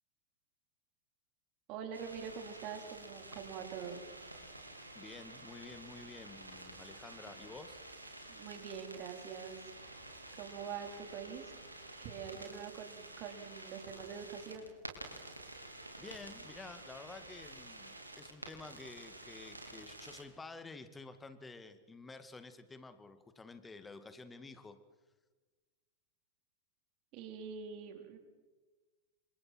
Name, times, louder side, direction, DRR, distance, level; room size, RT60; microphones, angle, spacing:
voice 1, 1.7-4.0 8.3-9.7 10.3-11.5 12.0-14.7 27.1-28.2, right 7 dB, 40° right, 4 dB, 4.4 m, -45 dB
sound 1, 1.9-20.2, right 2 dB, 85° right, 4.0 m, -50 dB
voice 2, 4.9-7.8 16.0-24.8, left 3 dB, 10° left, 11 dB, 2.2 m, -51 dB
30.0 x 26.0 x 4.6 m, 1.3 s
figure-of-eight pair, 90°, 0 cm